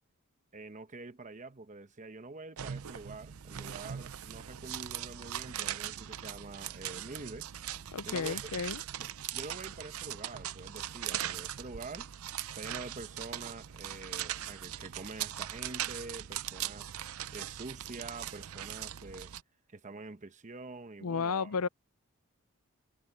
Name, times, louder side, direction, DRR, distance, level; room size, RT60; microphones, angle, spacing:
voice 1, 0.5-7.5 8.0-8.5 9.0-12.1 12.5-17.0 17.3-19.3 19.7-21.5, right 3 dB, 35° right, 1.0 m, -46 dB
sound 1, 2.6-19.4, right 11 dB, 70° right, 0.6 m, -40 dB
voice 2, 7.9-8.8 21.0-21.7, left 5 dB, 85° left, 0.6 m, -33 dB
head